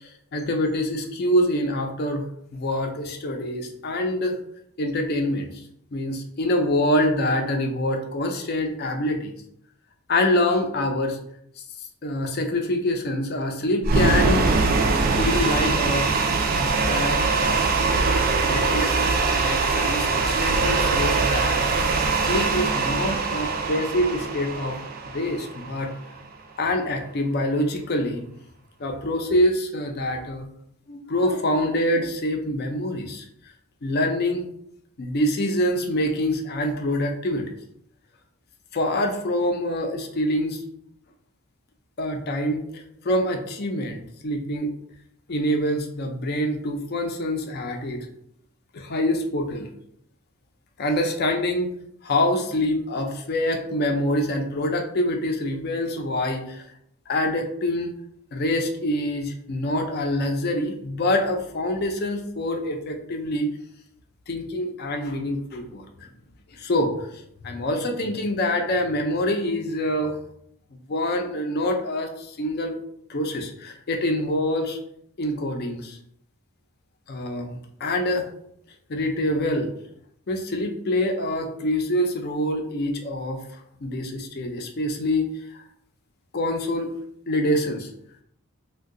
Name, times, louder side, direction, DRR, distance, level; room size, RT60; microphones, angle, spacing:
voice 1, 0.0-2.2 2.5-4.4 4.8-5.6 5.9-9.3 10.1-11.2 12.0-14.5 15.2-16.1 16.5-18.0 18.4-19.1 19.4-24.8 25.1-25.9 26.6-28.3 28.8-30.5 30.9-33.3 33.8-34.5 35.0-37.5 38.7-40.6 42.0-44.7 45.3-48.1 48.7-49.7 50.8-51.7 52.0-56.7 57.1-57.9 58.3-63.5 64.3-66.1 66.5-70.2 70.9-72.7 73.1-74.8 75.2-76.0 77.1-78.3 78.9-79.7 80.3-83.4 83.8-85.3 85.5-85.6 86.3-86.9 87.3-87.9, left 1 dB, 45° left, 4 dB, 0.4 m, -25 dB
sound 1, 13.8-26.0, right 4 dB, 40° right, 0.3 m, -22 dB
2.6 x 2.2 x 3.7 m, 0.72 s
head